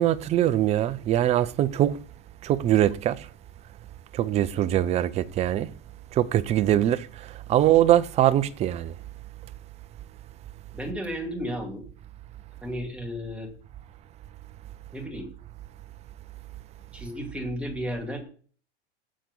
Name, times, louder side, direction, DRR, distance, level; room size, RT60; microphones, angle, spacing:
voice 1, 0.0-2.0 2.4-3.3 4.1-5.7 6.1-7.1 7.5-8.9, right 12 dB, 20° right, 0.4 m, -22 dB
voice 2, 10.7-11.8 12.6-13.5 14.9-15.3 16.9-18.2, equal, 5° right, 2.4 m, -33 dB
7.5 x 7.4 x 5.3 m
hypercardioid pair, 125°, 36 cm